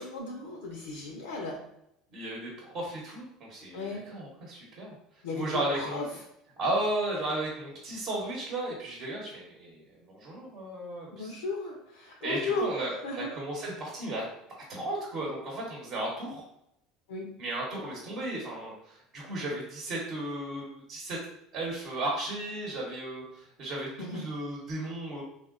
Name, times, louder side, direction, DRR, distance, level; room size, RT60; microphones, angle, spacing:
voice 1, 0.0-1.6 3.7-4.0 5.2-6.2 11.1-12.7 13.0-13.3 17.1-17.3 24.0-24.2, left 3 dB, 80° left, 1 dB, 0.4 m, -35 dB
voice 2, 2.1-4.9 5.4-6.0 6.6-11.4 12.2-14.2 14.6-16.4 17.4-21.2 21.5-25.2, right 1 dB, 50° right, -3 dB, 0.9 m, -35 dB
3.7 x 2.1 x 2.4 m, 0.80 s
hypercardioid pair, 75°, 0 cm